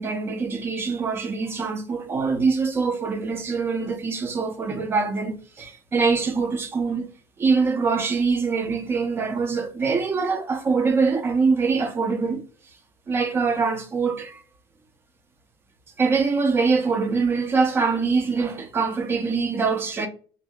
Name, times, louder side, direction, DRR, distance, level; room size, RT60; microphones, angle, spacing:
voice 1, 0.0-7.1 7.4-12.4 13.1-14.4 16.0-20.1, right 4 dB, 25° right, 0.6 m, -23 dB
2.7 x 2.1 x 3.4 m
cardioid pair, 140°, 9 cm